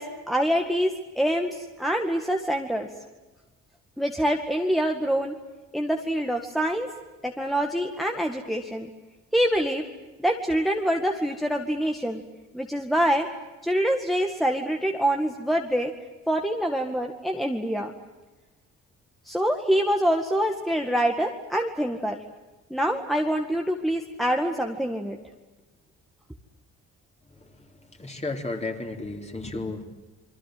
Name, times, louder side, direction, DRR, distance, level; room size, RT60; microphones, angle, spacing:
voice 1, 0.0-2.9 4.0-5.3 5.7-6.9 7.2-8.9 9.3-9.8 10.2-12.2 12.5-13.3 13.6-15.9 16.3-17.9 19.3-22.2 22.7-25.2, equal, ahead, 3 dB, 2.1 m, -25 dB
voice 2, 28.0-29.9, left 2 dB, 20° left, 3 dB, 4.2 m, -32 dB
28.5 x 22.5 x 8.0 m, 1.2 s
cardioid pair, 90°, 30 cm